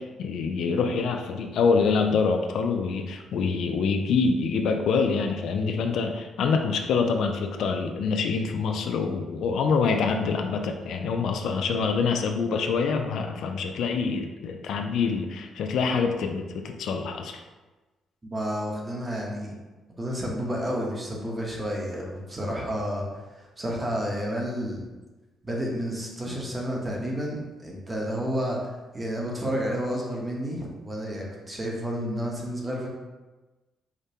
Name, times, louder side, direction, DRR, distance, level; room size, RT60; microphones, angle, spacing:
voice 1, 0.0-17.4, left 5 dB, 75° left, 4 dB, 0.3 m, -26 dB
voice 2, 18.3-19.5 20.0-23.1 23.6-24.8 25.4-32.9, equal, 25° right, -2 dB, 0.9 m, -30 dB
5.0 x 2.1 x 2.8 m, 1.2 s
cardioid pair, 90°, 0 cm